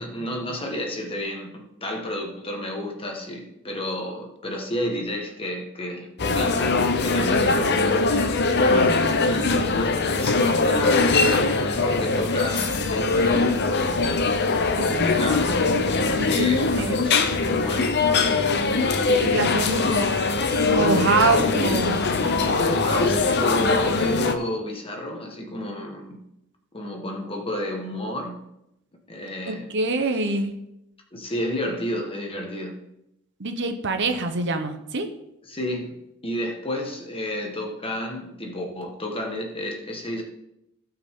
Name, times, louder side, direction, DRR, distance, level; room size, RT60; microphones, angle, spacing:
voice 1, 0.0-8.2 8.4-13.6 15.0-15.8 16.2-17.9 19.8-20.1 21.2-26.2 26.7-28.4 29.1-29.7 30.1-30.2 31.1-32.7 35.5-36.0 36.2-40.2, left 1 dB, 25° left, 2 dB, 1.6 m, -31 dB
sound 1, 6.2-24.3, left 3 dB, 50° left, 0.8 m, -22 dB
voice 2, 14.8-15.3 16.2-16.9 19.1-20.2 20.6-22.0 29.5-30.5 33.4-35.1, right 3 dB, 55° right, 6 dB, 1.0 m, -25 dB
16.5 x 5.9 x 3.8 m, 0.84 s
head